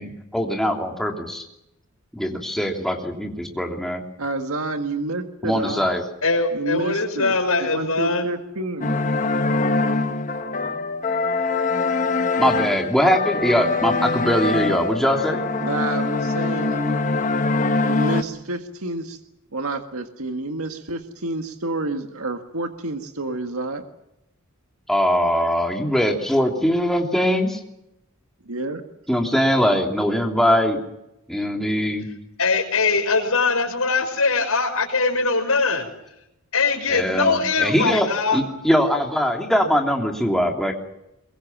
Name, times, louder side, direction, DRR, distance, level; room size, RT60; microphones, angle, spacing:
voice 1, 0.0-1.4 2.1-4.0 5.4-6.0 12.4-15.4 24.9-27.6 29.1-30.8 31.3-32.1 36.9-38.1 38.3-40.7, equal, ahead, 2 dB, 3.1 m, -21 dB
voice 2, 4.2-5.9 6.5-9.0 15.6-17.2 17.9-19.2 19.5-23.8 28.5-28.8, right 2 dB, 80° right, 6 dB, 1.8 m, -29 dB
voice 3, 6.2-8.3 32.4-35.9 36.5-38.4, left 4 dB, 75° left, 6 dB, 5.5 m, -21 dB
sound 1, 8.8-18.2, left 3 dB, 35° left, 1.3 m, -23 dB
23.0 x 22.5 x 7.3 m, 0.87 s
head